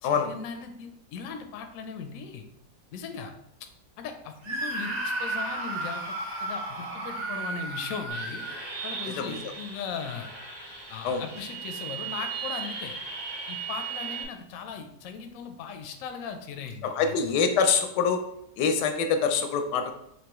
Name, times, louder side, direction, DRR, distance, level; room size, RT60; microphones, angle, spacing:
voice 1, 0.0-2.5 2.9-3.3 3.6-3.7 4.0-6.2 6.4-8.5 8.8-10.3 10.9-13.0 13.5-17.3, left 6 dB, 70° left, 6 dB, 0.9 m, -38 dB
Screaming, 4.4-9.3, right 2 dB, 70° right, 0.4 m, -33 dB
sound 1, 8.1-14.2, right 6 dB, 90° right, 2.5 m, -37 dB
voice 2, 16.8-18.2 18.6-19.9, left 6 dB, 85° left, 6 dB, 1.2 m, -25 dB
5.2 x 2.9 x 3.0 m, 0.76 s
omnidirectional pair, 1.8 m